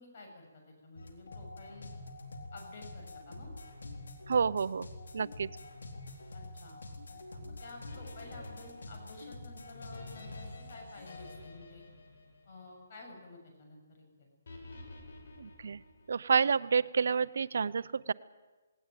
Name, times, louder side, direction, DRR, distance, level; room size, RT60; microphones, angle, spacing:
voice 1, 0.0-1.9 2.5-3.5 6.3-6.8 7.1-11.8 12.5-14.3, left 2 dB, 45° left, 2 dB, 7.0 m, -51 dB
sound 1, 1.0-11.3, left 2 dB, 85° left, 3.8 m, -47 dB
voice 2, 4.3-4.9 5.1-5.5 15.4-15.8 16.1-18.1, right 6 dB, 70° right, 17 dB, 0.6 m, -29 dB
sound 2, 7.9-13.2 14.5-16.4, left 2 dB, 60° left, 6.3 m, -51 dB
18.5 x 18.5 x 9.1 m, 1.2 s
hypercardioid pair, 160°, 0 cm